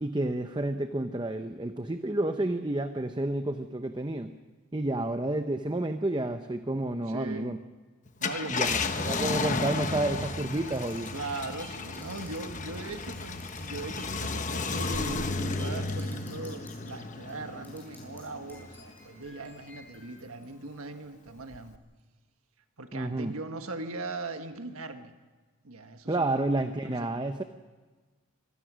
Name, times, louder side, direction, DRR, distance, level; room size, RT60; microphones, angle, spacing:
voice 1, 0.0-4.3 4.7-7.6 8.5-11.1 22.9-23.3 26.1-27.4, right 2 dB, 20° right, 8 dB, 0.7 m, -30 dB
voice 2, 7.1-7.5 8.2-9.0 11.1-21.8 22.8-25.1 25.6-26.5 26.8-27.2, right 3 dB, 80° right, 7 dB, 1.5 m, -40 dB
Car, 8.1-18.9 19.4-19.5 21.5-21.8, left 3 dB, 35° left, 1.1 m, -33 dB
sound 1, 9.5-16.9 17.3-18.2 18.5-20.9, left 1 dB, 10° left, 7.3 m, -50 dB
25.0 x 18.0 x 6.3 m, 1.4 s
head